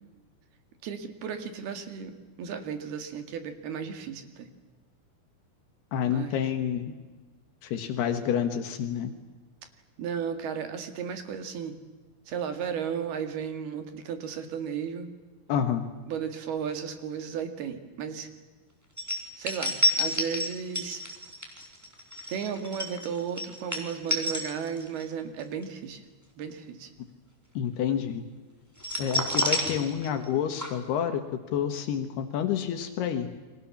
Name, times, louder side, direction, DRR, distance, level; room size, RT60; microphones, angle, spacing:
voice 1, 0.8-4.5 6.0-6.4 10.0-11.8 12.3-15.1 16.1-18.3 19.4-21.1 22.3-26.0 26.4-26.9, right 7 dB, 75° right, 8 dB, 4.0 m, -34 dB
voice 2, 5.9-6.9 7.6-9.1 15.5-15.9 27.6-28.2 29.0-33.3, left 8 dB, 80° left, 7 dB, 3.5 m, -29 dB
sound 1, 19.0-25.0 25.4-25.6 28.8-30.3 30.6-30.7, equal, 5° right, 3.7 m, -29 dB
29.5 x 23.5 x 7.2 m, 1.3 s
omnidirectional pair, 4.6 m